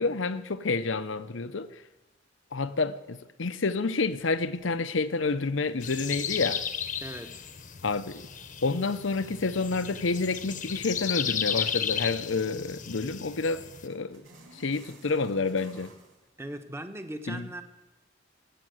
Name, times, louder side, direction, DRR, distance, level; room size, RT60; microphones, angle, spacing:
voice 1, 0.0-1.8 2.5-6.6 7.8-8.3 8.6-14.2 14.5-15.9 17.3-17.5, left 3 dB, 70° left, 0.8 m, -29 dB
sound 1, 4.1-16.2, right 1 dB, 85° right, 3.1 m, -55 dB
sound 2, 5.8-13.9, left 8 dB, 45° left, 1.0 m, -34 dB
voice 2, 7.0-7.4 16.4-17.6, right 1 dB, 15° right, 1.2 m, -39 dB
20.0 x 9.1 x 7.9 m
head